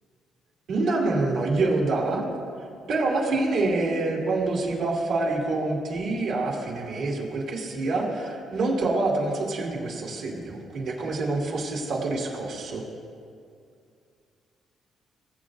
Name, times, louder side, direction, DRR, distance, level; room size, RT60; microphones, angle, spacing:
voice 1, 0.7-2.2 2.6-12.8, right 2 dB, 80° right, -3 dB, 2.6 m, -26 dB
20.5 x 8.0 x 2.6 m, 2.4 s
cardioid pair, 90°, 0 cm